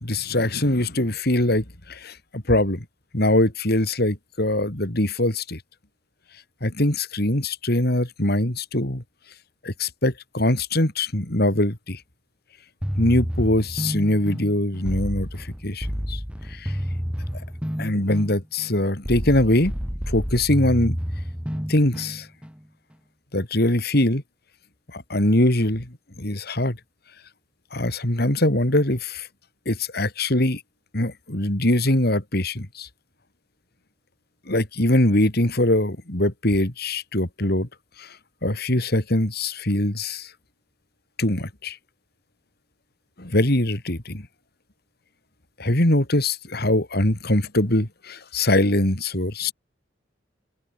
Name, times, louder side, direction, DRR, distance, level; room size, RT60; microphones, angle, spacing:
voice 1, 0.0-2.8 3.1-5.6 6.6-9.0 9.6-12.0 13.0-16.2 16.5-16.7 17.8-19.7 20.1-21.0 21.7-22.3 23.3-24.2 24.9-26.8 27.7-29.3 29.6-30.6 30.9-32.9 34.5-37.7 38.0-38.2 38.4-40.3 41.2-41.8 43.2-44.3 45.6-49.5, left 1 dB, 55° left, 3.4 m, -22 dB
sound 1, 12.8-22.6, equal, 5° right, 3.4 m, -30 dB
open air
head